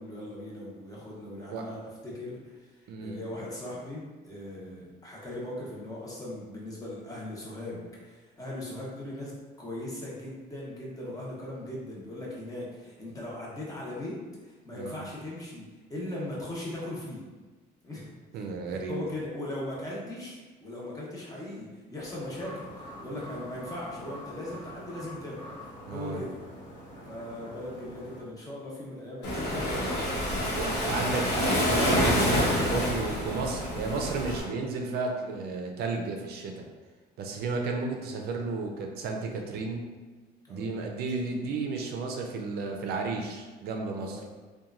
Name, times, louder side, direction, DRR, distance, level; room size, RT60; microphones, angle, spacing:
voice 1, 0.0-17.3 17.8-26.4 27.1-30.9 40.5-40.8 44.0-44.3, left 1 dB, 20° left, -5 dB, 0.8 m, -39 dB
voice 2, 2.9-3.2 14.7-15.0 18.3-19.0 25.9-26.2 30.5-36.7 37.2-39.9 40.5-44.2, right 3 dB, 70° right, 2 dB, 0.4 m, -33 dB
sound 1, 22.0-28.2, equal, 50° left, 1.0 m, -45 dB
Waves surf, 29.2-34.4, equal, 80° left, 0.9 m, -27 dB
2.9 x 2.2 x 2.4 m, 1.3 s
cardioid pair, 110°, 17 cm